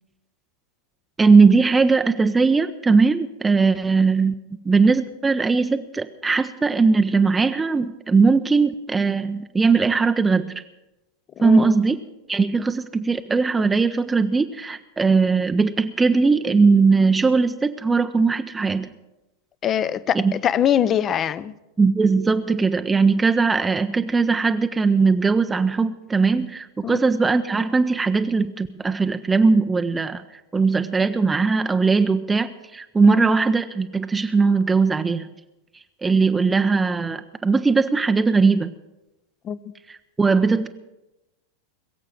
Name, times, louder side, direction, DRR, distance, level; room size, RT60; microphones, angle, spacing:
voice 1, 1.2-4.3 4.6-10.5 11.4-12.0 12.3-18.9 20.1-20.3 21.8-30.2 30.5-35.3 36.0-38.7 39.9-40.7, right 4 dB, 10° right, 0.6 m, -19 dB
voice 2, 11.4-11.8 19.6-21.5 26.8-27.0 33.1-33.3 39.4-39.6, left 9 dB, 25° left, 0.6 m, -23 dB
21.5 x 7.6 x 7.6 m
figure-of-eight pair, 90°, 0 cm